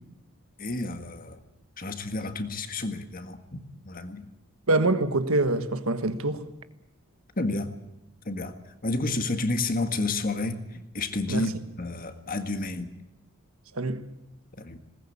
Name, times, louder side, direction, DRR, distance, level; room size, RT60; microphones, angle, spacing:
voice 1, 0.6-1.4 1.8-4.3 7.3-7.7 8.2-12.9 14.6-14.8, left 2 dB, 40° left, 1.7 m, -31 dB
voice 2, 4.7-6.4 11.3-11.4 13.7-14.0, right 2 dB, 70° right, 1.5 m, -25 dB
20.5 x 19.0 x 8.6 m
head